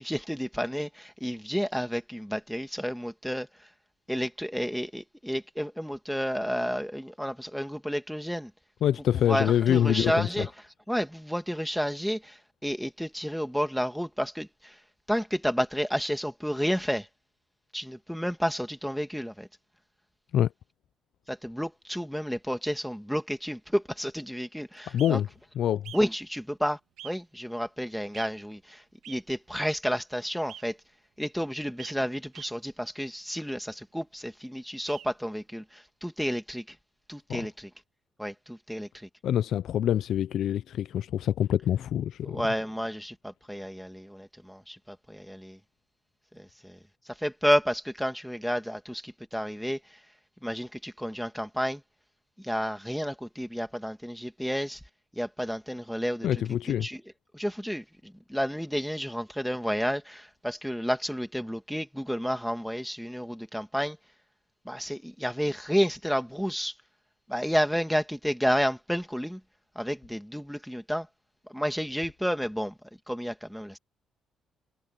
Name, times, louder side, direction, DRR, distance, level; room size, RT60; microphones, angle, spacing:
voice 1, 0.0-3.7 4.1-8.5 9.3-10.5 10.9-14.8 15.1-17.1 17.7-19.5 21.3-25.2 25.9-30.8 31.2-36.8 37.1-37.7 38.2-39.1 42.2-45.6 46.3-46.8 47.1-50.0 50.4-51.8 52.4-54.8 55.1-56.4 56.7-57.0 57.3-64.0 64.6-66.8 67.3-69.4 69.8-71.1 71.5-72.8 73.1-73.8, equal, ahead, 2.4 m, -31 dB
voice 2, 8.8-10.3 20.3-20.5 24.9-25.3 25.6-25.9 37.3-37.5 39.2-42.4 56.2-56.9, left 10 dB, 70° left, 0.4 m, -25 dB
sound 1, 25.0-25.1 25.8-26.0 27.0-27.1 28.1-28.3 29.0-29.2 30.5-30.6 31.8-31.9 32.3-32.5 34.9-35.1, right 11 dB, 80° right, 1.3 m, -44 dB
cardioid pair, 90°, 0 cm